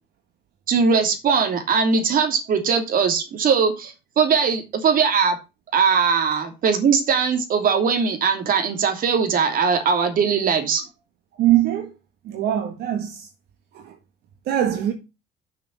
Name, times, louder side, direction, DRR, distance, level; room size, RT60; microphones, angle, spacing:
voice 1, 0.7-5.4 5.7-10.8, right 6 dB, 55° right, 2.8 m, -20 dB
voice 2, 11.4-11.9 12.3-13.3 13.7-13.9 14.5-14.9, right 12 dB, 75° right, 1.8 m, -22 dB
6.8 x 6.4 x 7.5 m
cardioid pair, 110°, 17 cm